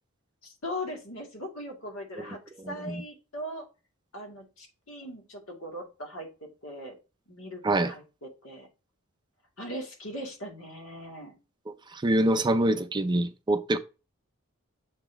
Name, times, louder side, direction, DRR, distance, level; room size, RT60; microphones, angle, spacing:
voice 1, 0.4-2.4 2.7-3.7 4.1-7.0 7.3-8.7 9.6-11.3, equal, 70° left, 2.2 m, -39 dB
voice 2, 11.9-13.8, right 1 dB, 20° right, 0.5 m, -25 dB
7.1 x 4.0 x 3.4 m
head